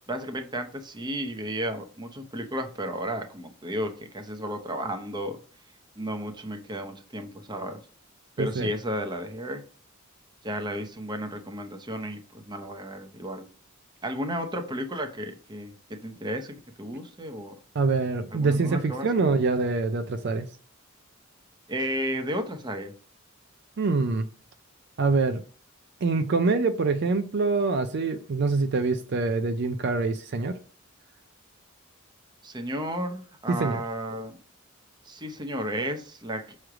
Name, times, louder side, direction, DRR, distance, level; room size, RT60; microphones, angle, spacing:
voice 1, 0.1-5.4 6.0-7.8 8.4-9.6 10.4-13.5 14.0-17.5 18.3-19.3 21.7-22.9 32.4-34.4 35.1-36.6, equal, 20° right, 6 dB, 0.7 m, -33 dB
voice 2, 8.4-8.7 17.8-20.5 23.8-24.3 25.0-25.4 26.0-30.6 33.5-33.8, right 3 dB, 55° right, 8 dB, 0.4 m, -25 dB
6.2 x 3.2 x 4.7 m, 0.42 s
head